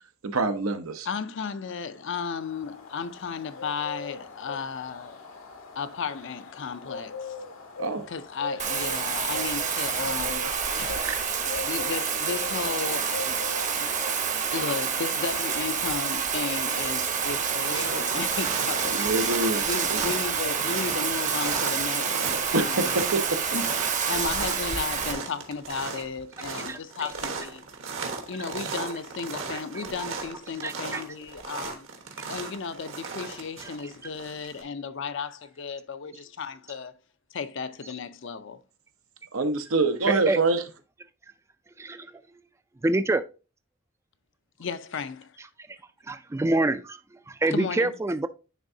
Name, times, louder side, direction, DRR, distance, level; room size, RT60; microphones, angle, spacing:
voice 1, 0.3-1.1 7.8-8.0 11.0-11.2 18.9-19.7 19.9-20.0 22.5-23.2 39.3-40.6, right 3 dB, 85° right, 0.8 m, -25 dB
voice 2, 1.1-5.2 5.8-7.4 8.1-10.9 11.6-14.2 14.5-19.1 19.6-22.9 23.5-23.7 24.1-27.6 28.3-31.9 32.3-36.9 37.3-38.6 44.6-45.4 47.5-47.9, left 5 dB, 65° left, 0.5 m, -34 dB
sound 1, 1.9-16.5, left 3 dB, 80° left, 1.2 m, -41 dB
Bathtub (filling or washing), 8.6-25.1, right 6 dB, 35° right, 0.8 m, -28 dB
sound 2, 16.1-16.4 16.7-34.6, right 4 dB, 70° right, 1.3 m, -36 dB
voice 3, 26.7-27.1 29.3-29.4 30.0-30.1 30.6-31.0 32.2-32.3 33.6-33.7 40.1-40.4 41.8-42.2 42.8-43.2 45.7-45.8 46.1-48.3, right 2 dB, 15° right, 0.3 m, -27 dB
10.0 x 3.5 x 2.7 m
head